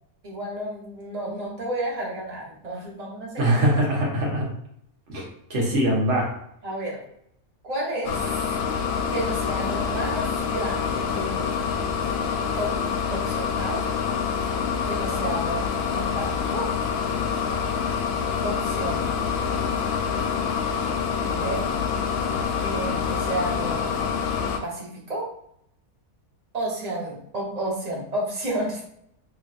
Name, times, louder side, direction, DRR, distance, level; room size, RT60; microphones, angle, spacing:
voice 1, 0.2-3.8 6.6-7.0 7.6-8.2 9.1-11.6 12.5-12.7 13.1-13.9 14.9-15.7 15.9-16.7 18.4-19.1 21.2-21.6 22.6-23.9 24.6-25.3 26.5-28.8, right 1 dB, 30° right, -3 dB, 1.0 m, -31 dB
voice 2, 3.4-4.5 5.1-5.2 5.5-6.3, right 1 dB, 55° right, -3 dB, 1.4 m, -22 dB
sound 1, 8.0-24.6, left 6 dB, 90° left, 1.1 m, -26 dB
4.0 x 3.2 x 2.4 m, 0.71 s
omnidirectional pair, 1.5 m